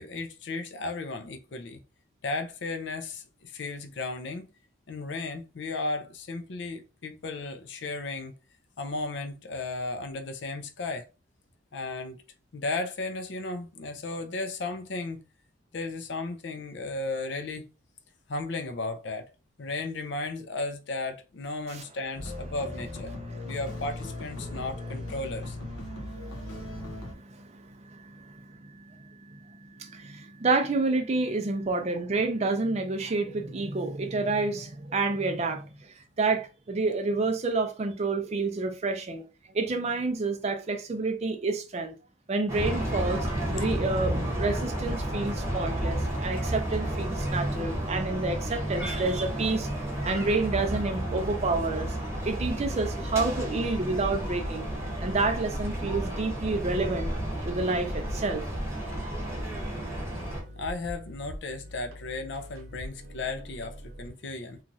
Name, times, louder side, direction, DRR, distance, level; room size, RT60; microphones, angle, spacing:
voice 1, 0.0-1.8 2.2-4.5 4.9-8.3 8.8-11.1 11.7-12.2 12.5-15.2 15.7-17.6 18.3-19.3 19.6-23.1 23.4-25.6 60.6-64.6, left 3 dB, 60° left, 0.4 m, -35 dB
sound 1, 22.1-27.1, left 1 dB, 85° left, 0.9 m, -38 dB
voice 2, 23.2-23.6 24.5-24.6 25.9-39.2 39.5-41.9 42.3-43.3 43.5-52.0 52.2-54.7 55.0-57.1 57.5-58.4, right 3 dB, 30° right, 0.4 m, -29 dB
sound 2, 42.5-60.4, right 1 dB, 15° right, 0.8 m, -32 dB
sound 3, 53.8-64.1, equal, 85° right, 0.8 m, -43 dB
2.9 x 2.3 x 2.6 m
head